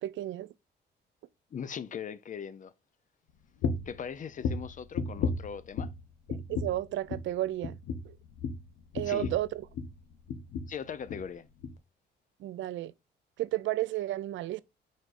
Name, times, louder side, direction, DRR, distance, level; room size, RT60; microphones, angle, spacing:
voice 1, 0.0-0.5 6.5-7.8 8.0-8.2 8.9-9.6 12.4-12.9 13.4-14.6, right 14 dB, 75° right, 0.5 m, -32 dB
voice 2, 1.5-2.7 3.9-5.9 8.9-9.3 10.7-11.4, left 7 dB, 40° left, 0.6 m, -40 dB
sound 1, 3.6-4.0 4.4-6.0 6.3-6.8 7.1-7.3 7.6-10.0 10.3-10.8 11.1-11.3 11.6-11.8, left 4 dB, 75° left, 0.8 m, -34 dB
4.7 x 4.3 x 2.5 m
cardioid pair, 90°, 20 cm